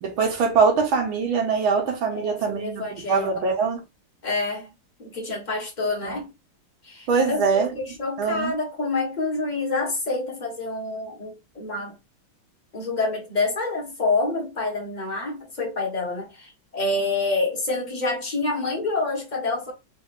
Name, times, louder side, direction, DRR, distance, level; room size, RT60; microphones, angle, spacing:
voice 1, 0.0-3.8 6.0-6.2 7.1-7.7 8.2-8.5, right 5 dB, 75° right, 1.9 m, -23 dB
voice 2, 2.1-3.3 4.2-4.7 5.0-6.3 6.8-11.9 12.7-19.7, left 3 dB, 25° left, 1.1 m, -27 dB
4.5 x 2.7 x 2.6 m
omnidirectional pair, 2.3 m